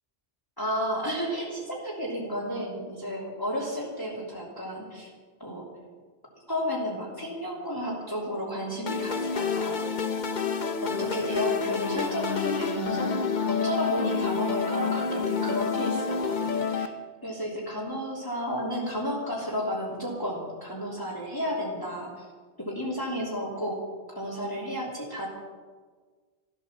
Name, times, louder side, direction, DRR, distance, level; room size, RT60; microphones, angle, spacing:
voice 1, 0.6-5.1 5.4-5.7 6.5-9.8 10.8-13.2 13.4-16.9 17.2-22.2 22.6-23.8 24.1-25.3, equal, 20° left, -5 dB, 3.0 m, -32 dB
sound 1, 8.9-16.9, left 5 dB, 50° left, 1.0 m, -28 dB
14.0 x 12.5 x 7.2 m, 1.5 s
omnidirectional pair, 1.1 m